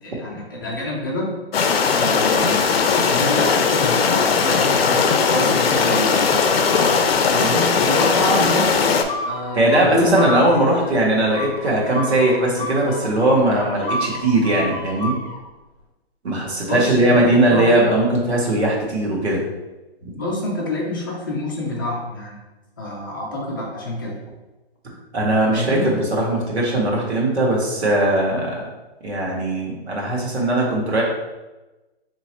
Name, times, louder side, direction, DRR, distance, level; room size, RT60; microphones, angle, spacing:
voice 1, 0.0-1.3 1.9-6.3 7.3-8.8 9.2-10.9 16.7-17.7 20.1-22.4 22.8-24.2 25.5-25.9, left 1 dB, 20° left, -4 dB, 0.5 m, -27 dB
sound 1, 1.5-9.0, left 5 dB, 70° left, 0.5 m, -18 dB
sound 2, 6.7-7.4 7.8-8.4 9.1-15.4, left 1 dB, 40° left, 0.8 m, -31 dB
voice 2, 9.5-15.1 16.2-19.4 20.0-20.1 25.1-28.5 29.0-31.0, right 1 dB, 90° right, -2 dB, 1.5 m, -19 dB
4.1 x 3.0 x 3.0 m, 1.1 s
hypercardioid pair, 170°, 32 cm